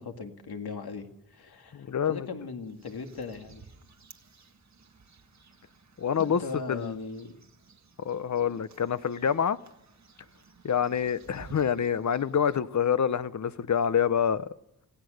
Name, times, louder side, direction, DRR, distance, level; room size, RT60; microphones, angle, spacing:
voice 1, 0.0-3.6 6.2-7.4, left 4 dB, 85° left, 2.1 m, -38 dB
voice 2, 1.7-2.3 6.0-6.4 6.7-7.0 8.0-9.6 10.6-14.5, left 8 dB, 50° left, 0.7 m, -27 dB
sound 1, 2.6-12.6, right 5 dB, 50° right, 1.7 m, -55 dB
26.0 x 16.5 x 6.4 m
wide cardioid pair, 125°, 37 cm